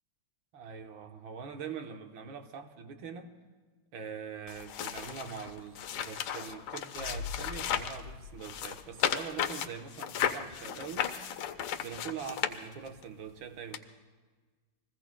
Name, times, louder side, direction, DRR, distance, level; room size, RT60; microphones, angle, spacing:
voice 1, 0.5-3.3 3.9-11.1 11.8-13.9, right 6 dB, 75° right, 1.8 m, -43 dB
sound 1, 4.5-8.0 8.4-13.0 13.7-13.8, left 9 dB, 85° left, 1.6 m, -35 dB
sound 2, 6.9-9.6 9.9-10.0, left 5 dB, 60° right, 8.2 m, -44 dB
30.0 x 21.5 x 2.2 m
omnidirectional pair, 2.2 m